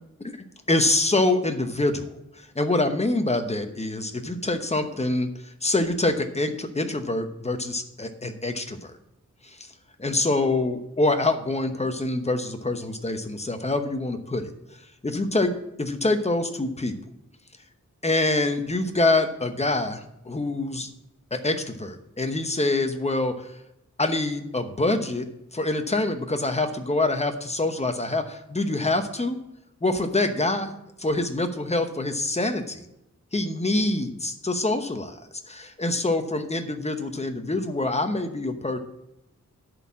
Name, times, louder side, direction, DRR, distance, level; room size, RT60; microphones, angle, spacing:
voice 1, 0.7-9.0 9.4-9.7 10.0-14.5 15.0-17.0 18.0-20.9 21.3-23.5 24.0-25.3 25.5-29.4 29.8-30.7 31.0-32.8 33.3-35.2 35.5-38.8, left 2 dB, 20° left, 7 dB, 0.9 m, -25 dB
10.5 x 4.4 x 7.4 m, 0.86 s
wide cardioid pair, 120°, 30 cm